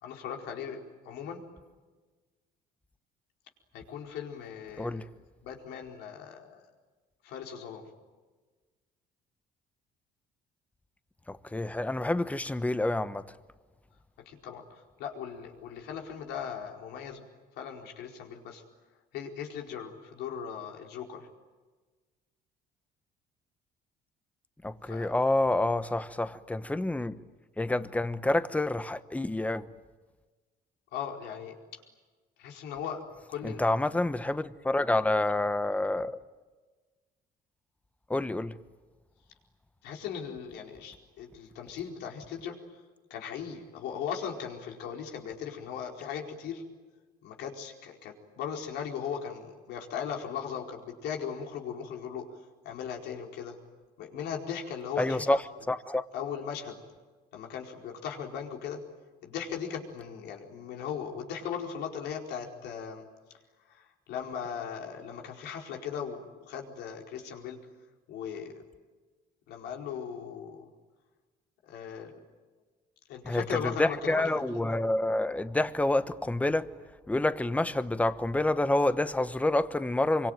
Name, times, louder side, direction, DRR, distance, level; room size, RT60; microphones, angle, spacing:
voice 1, 0.0-1.4 3.7-5.1 5.4-6.6 7.2-7.9 14.3-17.2 17.6-18.6 19.1-21.3 24.8-25.1 30.9-31.8 32.4-33.7 39.8-42.8 43.1-46.6 47.2-52.4 52.6-53.6 54.0-55.4 56.1-56.8 57.3-58.8 59.2-63.1 63.7-67.6 68.1-68.6 69.5-70.7 71.6-72.1 73.1-74.6, left 7 dB, 85° left, 4.7 m, -38 dB
voice 2, 4.8-5.1 11.3-13.4 24.6-27.2 27.6-29.7 33.4-36.2 38.1-38.6 55.0-55.4 55.7-56.0 73.2-76.7 77.1-80.3, left 2 dB, 10° left, 1.1 m, -28 dB
26.0 x 25.0 x 9.2 m
cardioid pair, 110°, 17 cm